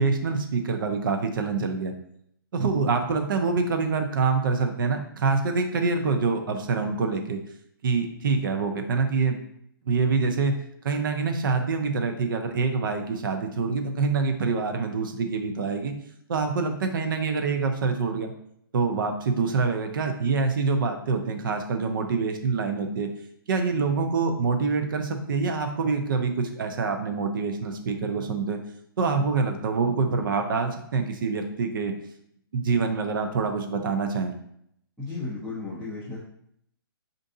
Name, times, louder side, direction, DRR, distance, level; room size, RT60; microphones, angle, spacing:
voice 1, 0.0-1.9 2.5-7.4 7.8-9.4 9.8-10.6 10.8-15.9 16.3-18.3 18.7-23.1 23.5-28.6 29.0-31.9 32.5-34.3, right 4 dB, 60° right, 5 dB, 0.6 m, -25 dB
voice 2, 35.0-36.2, left 3 dB, 5° right, -11 dB, 0.6 m, -34 dB
4.5 x 2.6 x 2.6 m, 0.72 s
hypercardioid pair, 165°, 13 cm